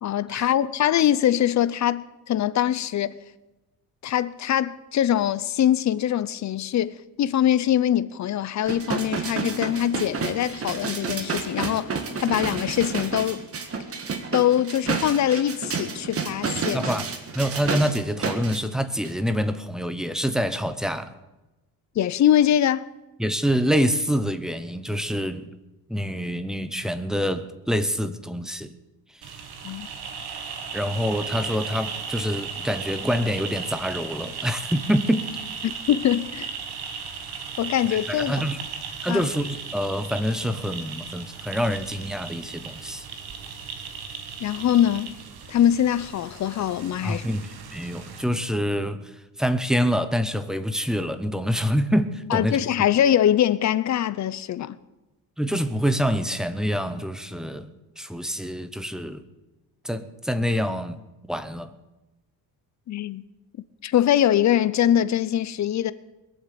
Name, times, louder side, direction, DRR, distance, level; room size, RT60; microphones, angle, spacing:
voice 1, 0.0-3.1 4.0-11.9 12.2-13.4 14.3-16.8 22.0-22.9 29.6-29.9 35.6-36.5 37.6-38.4 39.1-39.3 44.4-45.1 45.5-47.3 52.3-54.8 62.9-63.2 63.8-65.9, left 11 dB, 45° left, 0.7 m, -23 dB
sound 1, 8.7-18.6 19.0-19.1, right 5 dB, 35° right, 1.6 m, -30 dB
voice 2, 16.7-17.0 17.3-21.1 23.2-25.5 25.9-28.7 30.7-35.3 38.1-38.6 39.0-43.0 47.0-49.1 49.4-52.6 55.4-57.7 58.0-59.2 59.8-61.0 61.3-61.7, equal, ahead, 0.7 m, -26 dB
sound 2, 29.2-48.2, right 6 dB, 70° right, 1.8 m, -36 dB
21.5 x 7.3 x 8.3 m
cardioid pair, 155°, 39 cm